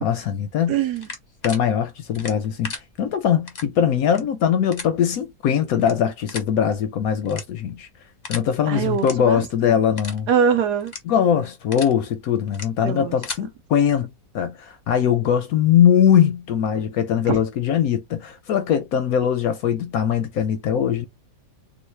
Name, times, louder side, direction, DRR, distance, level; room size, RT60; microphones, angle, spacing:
voice 1, 0.0-0.8 1.4-7.9 8.3-10.3 11.1-21.1, left 8 dB, 70° left, 0.9 m, -21 dB
voice 2, 0.7-1.1 8.7-9.4 9.7-9.8 10.3-10.9 12.8-13.1 17.3-17.4, right 7 dB, 75° right, 1.3 m, -22 dB
sound 1, 1.0-1.6 2.1-2.8 3.5-3.7 4.0-4.2 4.7-4.9 5.8-5.9 6.3-6.5 7.3-7.7 8.2-8.5 8.9-9.1 9.5-9.6 10.0-10.2 10.8-11.0 11.5-11.9 12.5-12.7 13.0-13.4, left 4 dB, 35° left, 0.7 m, -34 dB
3.8 x 2.3 x 3.1 m
omnidirectional pair, 1.8 m